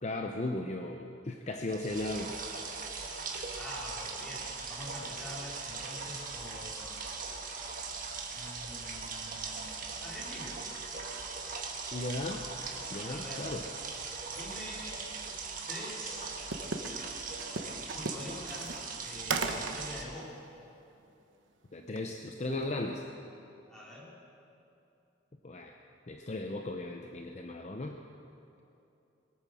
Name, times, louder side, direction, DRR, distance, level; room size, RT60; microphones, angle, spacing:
voice 1, 0.0-2.4 11.9-12.4 12.9-13.6 21.7-23.0 25.4-25.8 26.1-28.0, left 2 dB, 35° left, 3 dB, 0.6 m, -36 dB
sound 1, 1.7-20.0, right 4 dB, 45° right, 1.5 m, -40 dB
voice 2, 3.5-7.1 8.3-10.6 12.7-13.5 14.2-15.1 15.7-16.3 17.9-20.4 23.7-24.1, equal, 5° left, -7 dB, 3.4 m, -46 dB
sound 2, 16.5-16.9 17.4-19.8 20.2-20.3 22.0-22.2 22.5-22.7, right 4 dB, 85° right, 1.1 m, -35 dB
21.5 x 9.0 x 6.2 m, 2.8 s
head